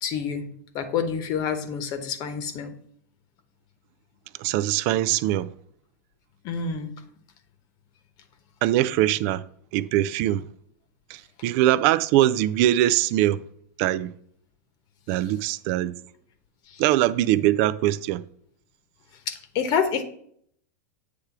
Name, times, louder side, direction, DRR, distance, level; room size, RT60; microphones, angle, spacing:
voice 1, 0.0-0.5 0.7-2.7 6.4-6.9 16.7-16.8 19.3-20.0, left 6 dB, 45° left, 1.0 m, -27 dB
voice 2, 4.4-5.5 8.6-9.4 9.7-10.4 11.1-13.4 13.8-14.1 15.1-15.9 16.8-18.2, right 13 dB, 55° right, 0.4 m, -22 dB
8.2 x 3.4 x 5.9 m
hypercardioid pair, 115°, 9 cm